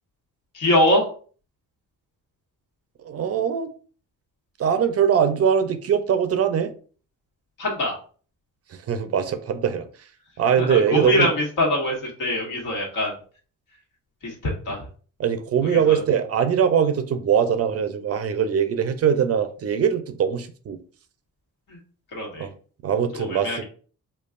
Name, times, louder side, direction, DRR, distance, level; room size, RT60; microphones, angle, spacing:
voice 1, 0.5-1.1 7.6-8.0 10.6-13.2 14.2-14.8 15.6-16.0 21.7-21.8 22.1-22.5 23.1-23.6, left 1 dB, 75° left, 1.6 m, -23 dB
voice 2, 3.0-3.7 4.6-6.7 8.9-10.1 10.4-11.4 15.2-20.8 22.4-22.5 22.8-23.6, right 8 dB, 50° right, 0.5 m, -22 dB
5.2 x 2.3 x 2.4 m
cardioid pair, 135°, 32 cm